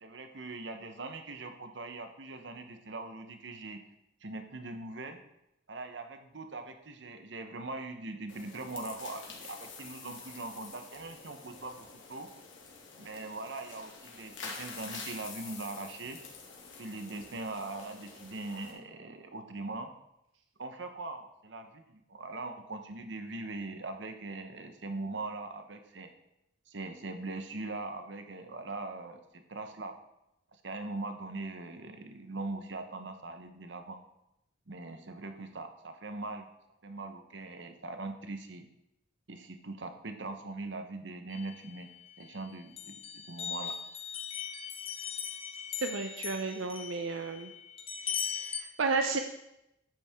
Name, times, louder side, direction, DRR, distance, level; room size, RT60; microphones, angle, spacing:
voice 1, 0.0-3.8 4.2-5.2 5.7-12.3 13.0-16.2 16.8-19.9 20.6-26.1 26.7-30.0 30.6-34.0 34.7-36.5 36.8-38.7 39.3-41.9 42.2-43.8, right 2 dB, 65° right, 7 dB, 1.0 m, -41 dB
sound 1, 8.3-18.7, left 4 dB, 80° left, 2.1 m, -47 dB
sound 2, 41.3-42.3 42.8-48.6, left 7 dB, 30° left, 0.8 m, -39 dB
voice 2, 45.8-47.5 48.1-49.2, right 4 dB, 85° right, 6 dB, 0.6 m, -33 dB
10.0 x 8.6 x 3.6 m, 0.85 s
head